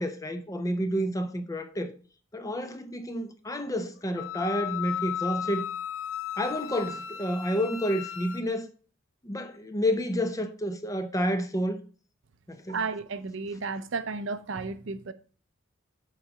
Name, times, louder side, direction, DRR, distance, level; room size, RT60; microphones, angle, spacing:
voice 1, 0.0-1.9 2.3-5.7 6.3-8.7 9.2-11.8 12.5-12.8, equal, 15° left, 0.5 m, -30 dB
Wind instrument woodwind instrument, 4.2-8.4, left 10 dB, 75° left, 0.5 m, -35 dB
voice 2, 12.7-15.1, right 4 dB, 60° right, 0.5 m, -33 dB
7.2 x 4.0 x 4.9 m
head